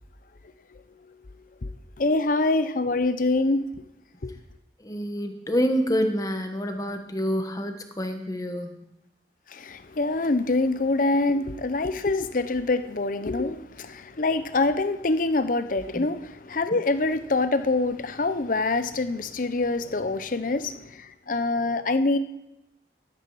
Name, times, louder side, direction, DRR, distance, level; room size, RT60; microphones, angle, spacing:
voice 1, 2.0-3.7 4.2-4.3 9.5-22.2, left 2 dB, 50° left, 0.7 m, -25 dB
voice 2, 4.8-8.7 15.9-16.0 16.7-16.8, equal, 20° left, 1.2 m, -27 dB
13.0 x 11.5 x 4.8 m
head